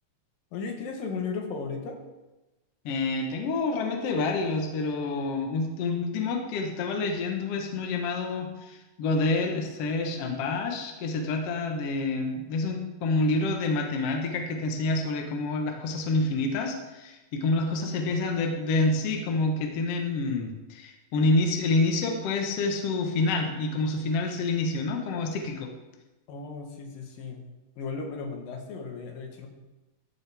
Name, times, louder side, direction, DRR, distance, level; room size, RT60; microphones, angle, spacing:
voice 1, 0.5-2.0 26.3-27.4 27.8-29.5, left 4 dB, 80° left, 2 dB, 2.9 m, -35 dB
voice 2, 2.8-25.7, left 3 dB, 60° left, 3 dB, 1.7 m, -28 dB
13.0 x 7.2 x 3.4 m, 1.1 s
omnidirectional pair, 4.0 m